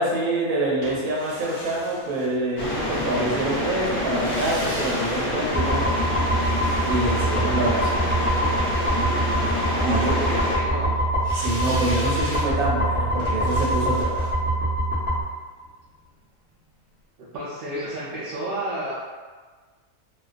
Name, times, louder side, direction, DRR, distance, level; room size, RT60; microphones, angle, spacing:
voice 1, 0.0-5.8 6.8-8.0 9.8-10.1 11.3-14.3, right 2 dB, 90° right, -5 dB, 1.1 m, -26 dB
sound 1, 0.8-2.9 4.0-8.2 11.2-16.2 16.5-16.6, left 1 dB, 80° left, 0.3 m, -39 dB
sound 2, 2.6-10.6, left 2 dB, 55° left, 0.7 m, -27 dB
sound 3, 5.5-15.2, right 1 dB, 15° right, 0.3 m, -24 dB
voice 2, 9.7-11.0 17.3-18.9, right 1 dB, 65° right, -7 dB, 0.5 m, -31 dB
2.4 x 2.2 x 2.4 m, 1.4 s
omnidirectional pair, 1.4 m